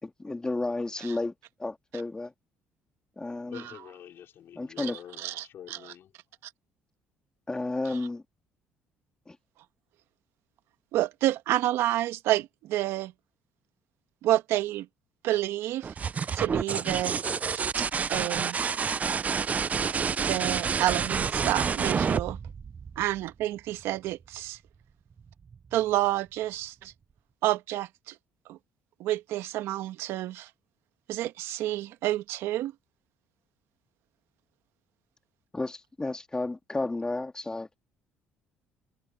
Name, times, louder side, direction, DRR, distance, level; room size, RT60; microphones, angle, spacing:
voice 1, 0.0-1.3 1.6-2.3 3.2-3.6 4.6-5.0 7.5-8.2 9.3-9.4 35.5-37.7, left 2 dB, 15° left, 2.4 m, -32 dB
voice 2, 3.4-6.1, left 10 dB, 60° left, 5.1 m, -47 dB
voice 3, 10.9-13.1 14.2-14.9 15.2-15.9 16.3-17.2 17.5-18.6 20.2-22.4 23.0-24.6 25.7-26.7 27.4-28.1 28.5-28.6 29.0-30.5 31.1-32.7, right 15 dB, 80° right, 1.7 m, -29 dB
sound 1, 15.8-23.4 25.2-25.8, right 6 dB, 35° right, 0.5 m, -29 dB
supercardioid pair, 80°, 4 cm